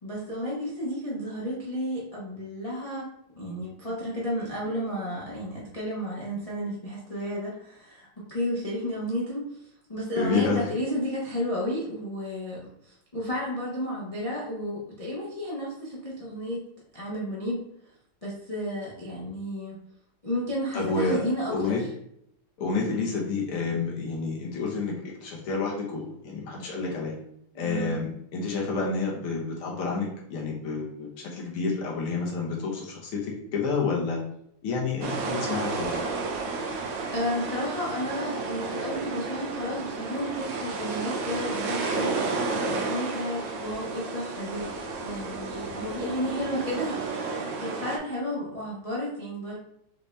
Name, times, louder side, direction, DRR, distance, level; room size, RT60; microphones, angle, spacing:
voice 1, 0.0-3.1 3.4-16.6 16.9-17.6 18.2-19.8 20.2-21.9 27.5-28.0 37.1-44.7 45.0-49.5, equal, 40° left, -5 dB, 0.5 m, -32 dB
voice 2, 10.2-10.7 20.7-21.2 21.5-21.8 22.6-24.9 25.2-27.1 27.6-34.2 34.6-36.0, left 4 dB, 90° left, -3 dB, 1.9 m, -29 dB
sound 1, 35.0-48.0, right 3 dB, 75° right, 1.4 m, -32 dB
5.8 x 2.7 x 3.3 m, 0.74 s
omnidirectional pair, 2.3 m